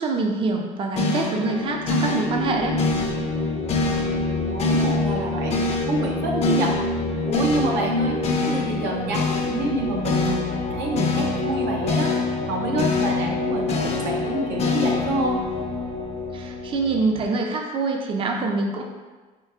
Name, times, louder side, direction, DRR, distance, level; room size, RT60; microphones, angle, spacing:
voice 1, 0.0-2.7 16.3-18.8, right 3 dB, 30° right, 2 dB, 0.4 m, -25 dB
sound 1, 0.9-17.2, left 3 dB, 40° left, 0.5 m, -25 dB
voice 2, 4.5-6.8 7.2-8.2 8.5-12.1 12.5-15.4, right 2 dB, 85° right, 0 dB, 0.7 m, -27 dB
sound 2, 8.9-17.2, equal, 60° right, 1.4 m, -41 dB
4.4 x 2.7 x 2.4 m, 1.3 s
cardioid pair, 110°, 17 cm